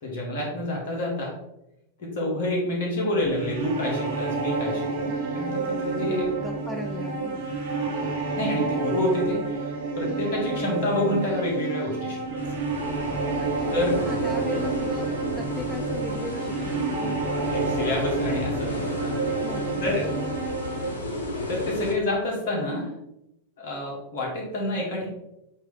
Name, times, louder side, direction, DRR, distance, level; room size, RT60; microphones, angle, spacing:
voice 1, 0.0-1.4 2.0-6.3 7.7-9.7 9.9-12.2 13.7-14.0 17.5-19.1 19.8-20.1 21.5-22.9 23.6-25.1, left 1 dB, 50° left, -2 dB, 2.2 m, -28 dB
sound 1, 3.2-20.9, right 4 dB, 65° right, 1.4 m, -29 dB
voice 2, 6.0-7.5 13.4-17.4 19.4-20.2, left 1 dB, 5° left, 3 dB, 0.6 m, -37 dB
sound 2, 12.4-21.9, left 2 dB, 70° left, 1.2 m, -33 dB
8.1 x 3.3 x 3.7 m, 0.87 s
figure-of-eight pair, 90°, 0 cm